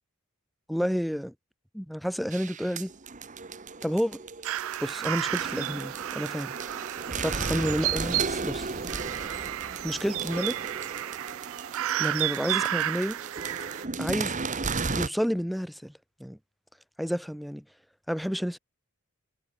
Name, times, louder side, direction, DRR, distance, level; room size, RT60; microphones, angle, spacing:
voice 1, 0.7-1.3 1.7-2.9 3.8-4.2 4.8-6.6 7.2-8.7 9.8-10.6 12.0-13.2 14.0-14.4 14.9-15.9 16.2-16.4 17.0-17.6 18.1-18.6, equal, ahead, 0.5 m, -30 dB
sound 1, 2.3-15.1, right 4 dB, 35° right, 1.2 m, -35 dB
sound 2, 4.4-13.9, right 13 dB, 65° right, 0.4 m, -32 dB
head